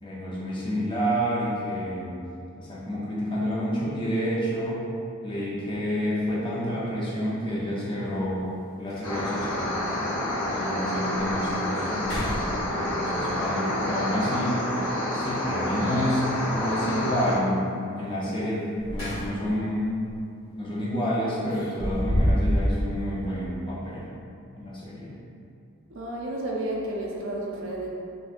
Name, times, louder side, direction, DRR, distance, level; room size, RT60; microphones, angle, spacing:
voice 1, 0.0-2.2 2.6-4.8 5.2-8.4 8.8-9.9 10.5-14.6 15.1-17.7 18.0-20.0 20.5-24.1 24.5-25.2, equal, 20° left, -7 dB, 0.6 m, -29 dB
sound 1, 6.2-6.3 8.0-8.1 8.5-8.6 8.9-9.4 10.0-10.1 10.7-10.8 11.2-11.5 11.9-13.0 15.1-15.8 18.5-19.6 20.0-20.2 21.5-22.8, equal, 65° left, 1.3 m, -28 dB
sound 2, 9.0-17.3, left 1 dB, 90° left, 0.7 m, -28 dB
voice 2, 25.9-27.9, right 1 dB, 60° right, -2 dB, 0.4 m, -31 dB
3.5 x 2.6 x 2.5 m, 2.5 s
head